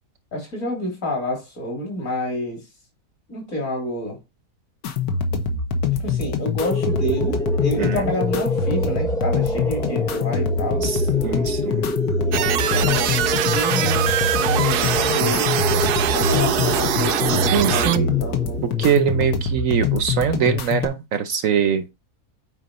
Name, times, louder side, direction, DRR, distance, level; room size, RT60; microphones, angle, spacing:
voice 1, 0.3-2.6 3.3-4.2 6.0-10.9 12.2-15.5 16.1-18.6, left 1 dB, 55° left, 3.6 m, -29 dB
sound 1, 4.8-20.8, left 5 dB, 75° left, 1.6 m, -24 dB
sound 2, 6.6-19.4, equal, 5° left, 0.4 m, -28 dB
voice 2, 10.8-11.9 17.3-18.1 18.6-21.9, right 8 dB, 65° right, 1.0 m, -22 dB
sound 3, 12.3-18.0, right 11 dB, 85° right, 1.2 m, -23 dB
8.4 x 5.0 x 4.1 m
omnidirectional pair, 1.7 m